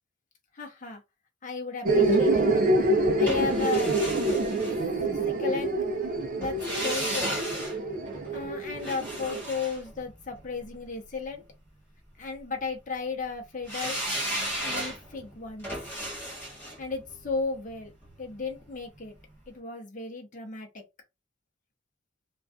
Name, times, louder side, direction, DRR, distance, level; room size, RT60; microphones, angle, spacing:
voice 1, 0.5-1.0 1.4-2.5 3.2-4.1 5.1-5.7 6.4-7.6 8.3-11.4 12.2-14.0 14.6-15.7 16.8-17.9 18.2-19.1 19.5-20.8, left 4 dB, 40° left, 0.7 m, -34 dB
sound 1, 1.9-9.4, right 2 dB, 45° right, 0.4 m, -26 dB
sound 2, 3.3-5.4 6.4-10.7 13.7-18.7 19.0-19.1, right 1 dB, 10° left, 1.2 m, -35 dB
2.5 x 2.3 x 2.3 m
head